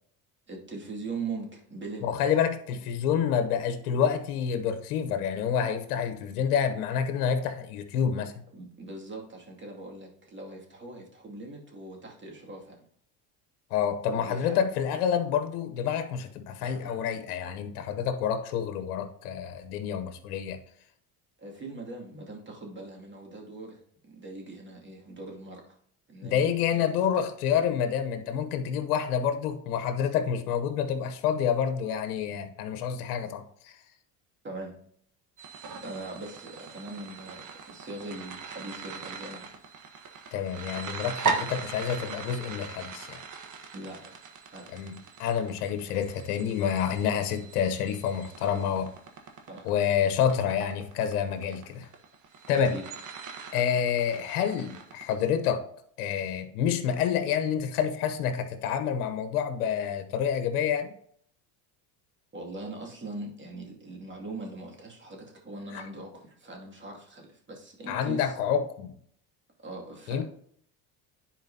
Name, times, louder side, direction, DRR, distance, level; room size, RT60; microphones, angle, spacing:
voice 1, 0.5-2.1 8.5-12.8 14.1-14.7 16.6-17.0 21.4-23.8 24.1-25.8 26.1-27.2 34.4-34.7 35.7-39.5 43.7-44.1 44.5-44.6 49.5-49.7 52.5-52.8 62.3-68.3 69.6-70.2, right 2 dB, 25° right, 0 dB, 2.4 m, -41 dB
voice 2, 2.0-8.3 13.7-20.6 26.2-33.8 40.3-43.2 44.7-48.9 49.6-51.9 52.5-52.7 53.5-55.6 56.0-61.0 65.7-65.8 67.9-68.9 70.1-70.2, left 8 dB, 85° left, 8 dB, 1.0 m, -28 dB
sound 1, 35.4-55.1, right 5 dB, 40° right, 1.5 m, -39 dB
10.5 x 4.6 x 2.8 m, 0.63 s
supercardioid pair, 85°, 45 cm